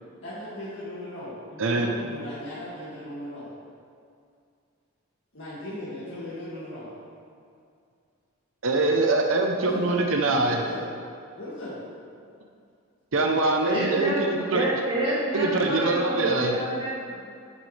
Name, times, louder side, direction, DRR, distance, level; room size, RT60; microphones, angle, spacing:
voice 1, 0.2-3.5 5.3-6.9 9.6-10.0 10.5-10.9 11.4-11.8, left 1 dB, 60° left, -11 dB, 2.2 m, -37 dB
voice 2, 8.6-10.6 13.1-14.6 15.3-16.5, right 2 dB, 65° right, 2 dB, 0.8 m, -23 dB
voice 3, 13.7-17.1, equal, 25° right, -8 dB, 2.1 m, -28 dB
9.8 x 9.5 x 3.3 m, 2.4 s
head